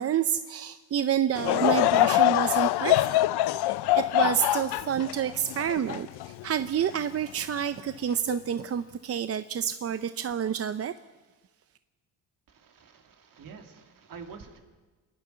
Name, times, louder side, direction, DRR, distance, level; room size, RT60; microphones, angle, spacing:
voice 1, 0.0-3.2 4.0-10.9, right 9 dB, 40° right, 11 dB, 0.6 m, -29 dB
Laughter / Crowd, 1.4-6.8 7.4-7.5 8.3-8.5, left 16 dB, 85° left, 0.6 m, -24 dB
voice 2, 12.5-14.6, right 5 dB, 60° right, 3 dB, 2.9 m, -47 dB
27.0 x 11.0 x 9.2 m, 1.3 s
cardioid pair, 110°, 38 cm